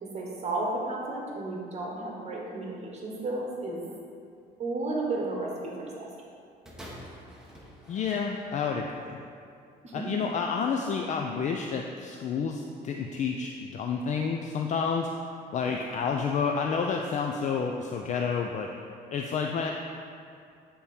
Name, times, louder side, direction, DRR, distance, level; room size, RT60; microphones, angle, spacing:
voice 1, 0.0-3.8 4.6-6.1 9.8-10.3 15.6-15.7, right 2 dB, 40° right, -2 dB, 1.2 m, -33 dB
sound 1, 6.7-8.9 9.7-9.8, equal, 5° right, 1.0 m, -47 dB
voice 2, 7.9-9.2 9.9-15.1 15.5-18.7 19.1-19.7, left 6 dB, 45° left, 2 dB, 0.4 m, -30 dB
8.7 x 3.6 x 4.3 m, 2.4 s
cardioid pair, 110°, 17 cm